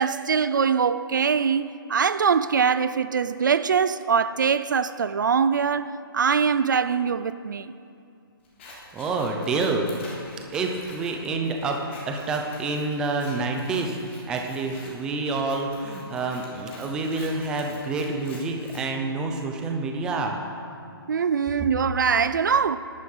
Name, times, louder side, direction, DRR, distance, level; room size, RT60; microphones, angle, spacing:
voice 1, 0.0-7.7 21.1-22.8, right 6 dB, 50° right, 0.5 m, -23 dB
Scissors, 8.4-18.8, left 2 dB, 30° left, 3.5 m, -47 dB
voice 2, 8.9-9.9 10.5-11.8 12.1-14.0 14.3-20.4, right 3 dB, 5° right, 0.6 m, -28 dB
17.5 x 11.5 x 5.5 m
hypercardioid pair, 175°, 13 cm